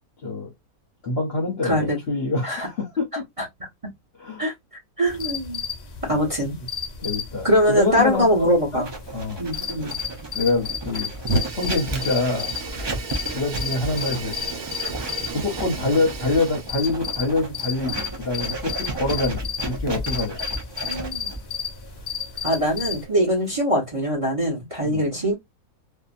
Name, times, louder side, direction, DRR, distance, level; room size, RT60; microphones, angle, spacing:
voice 1, 0.2-0.5 1.0-3.2 4.2-4.5 6.1-6.4 7.0-8.9 9.1-9.4 10.3-11.1 11.5-12.5 13.3-14.3 15.3-20.4 24.8-25.1, left 3 dB, 50° left, 0.9 m, -25 dB
voice 2, 1.6-2.0 2.4-2.7 3.4-3.5 4.4-4.5 5.0-5.6 6.0-6.6 7.4-8.9 9.4-10.0 20.9-21.3 22.4-25.3, equal, 25° right, 0.9 m, -22 dB
sound 1, 5.0-23.0, left 7 dB, 85° left, 0.3 m, -33 dB
Writing, 8.8-23.6, right 2 dB, 40° right, 0.3 m, -34 dB
Fire, 11.2-16.8, right 3 dB, 70° right, 1.5 m, -32 dB
2.7 x 2.5 x 2.4 m
omnidirectional pair, 1.6 m